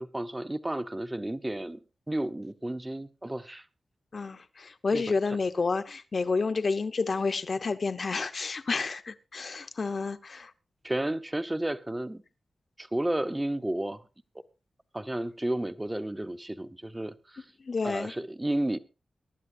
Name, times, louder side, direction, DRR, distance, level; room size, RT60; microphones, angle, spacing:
voice 1, 0.0-1.8 2.1-3.6 4.9-5.0 10.8-12.2 12.8-14.0 14.9-17.4 17.8-18.8, right 1 dB, 10° right, 0.7 m, -32 dB
voice 2, 4.1-10.5 17.6-18.1, left 4 dB, 45° left, 0.8 m, -30 dB
23.5 x 12.0 x 2.6 m
wide cardioid pair, 160°, 0 cm